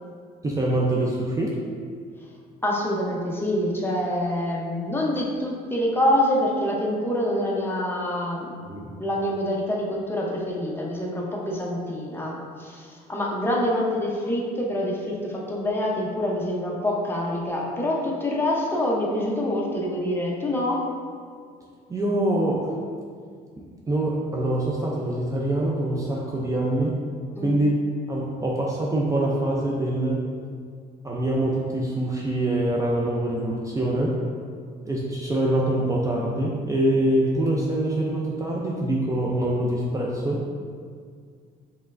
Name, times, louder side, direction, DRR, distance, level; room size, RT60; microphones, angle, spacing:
voice 1, 0.4-1.6 8.7-8.9 21.9-22.7 23.6-27.0 27.4-30.2 31.0-34.2 34.8-40.5, right 1 dB, 20° right, -3 dB, 0.5 m, -24 dB
voice 2, 2.6-8.5 9.0-20.8 27.4-27.5, left 1 dB, 15° left, -3 dB, 0.7 m, -26 dB
5.3 x 3.2 x 2.5 m, 2.1 s
cardioid pair, 110°, 17 cm